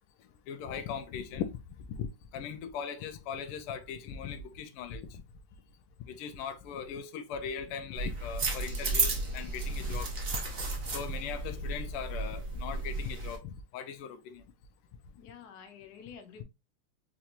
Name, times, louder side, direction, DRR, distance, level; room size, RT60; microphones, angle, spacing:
voice 1, 0.5-1.6 1.9-5.2 6.1-10.1 10.9-14.4, left 7 dB, 85° left, 1.5 m, -39 dB
sound 1, 8.0-13.4, right 3 dB, 55° right, 0.6 m, -33 dB
voice 2, 15.2-16.4, left 7 dB, 65° left, 1.1 m, -49 dB
4.5 x 2.8 x 2.4 m
omnidirectional pair, 2.4 m